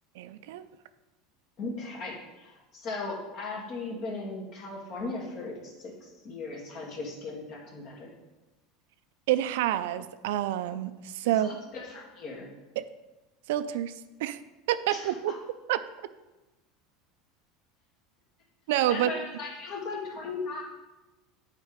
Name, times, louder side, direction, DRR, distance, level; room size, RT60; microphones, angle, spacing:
voice 1, 0.2-0.7 9.3-11.5 12.8-12.9 13.5-14.4 14.7-15.3 15.7-15.8 18.7-19.2, right 12 dB, 80° right, 12 dB, 0.4 m, -28 dB
voice 2, 1.6-8.1 11.3-12.5 14.9-15.1 18.9-20.6, left 3 dB, 50° left, -1 dB, 2.2 m, -37 dB
8.1 x 4.5 x 5.0 m, 1.1 s
supercardioid pair, 115°, 0 cm